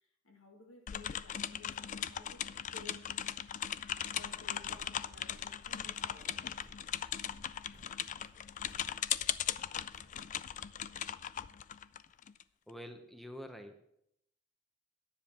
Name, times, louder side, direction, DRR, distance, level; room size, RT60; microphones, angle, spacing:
voice 1, 0.0-3.1 4.1-6.5, left 2 dB, 85° left, 2.3 m, -56 dB
sound 1, 0.9-12.4, left 10 dB, 40° left, 0.3 m, -38 dB
sound 2, 4.2-10.2, equal, 65° left, 3.6 m, -59 dB
voice 2, 12.7-13.8, equal, ahead, 0.8 m, -47 dB
10.5 x 7.1 x 6.8 m
head